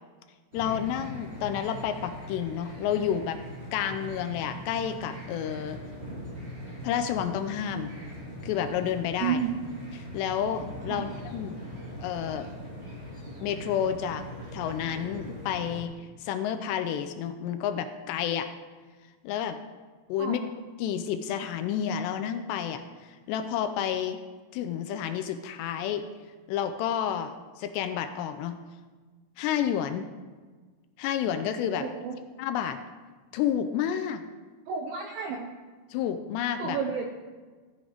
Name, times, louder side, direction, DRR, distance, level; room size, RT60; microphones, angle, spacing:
voice 1, 0.5-5.8 6.8-7.9 8.4-9.4 10.1-11.6 12.0-12.5 13.4-18.5 19.2-19.6 20.1-20.4 20.8-22.8 23.1-24.2 24.5-26.0 26.5-27.3 27.6-28.6 29.4-30.1 31.0-31.9 32.4-32.8 33.3-34.3 35.9-36.8, left 9 dB, 80° left, 8 dB, 2.6 m, -30 dB
sound 1, 0.5-15.8, equal, 40° right, 0.9 m, -41 dB
voice 2, 9.2-9.5 10.9-11.1 20.2-20.4 31.8-32.2 34.7-35.4 36.6-37.0, right 7 dB, 80° right, 3 dB, 2.1 m, -31 dB
14.5 x 8.1 x 5.0 m, 1.4 s
omnidirectional pair, 5.2 m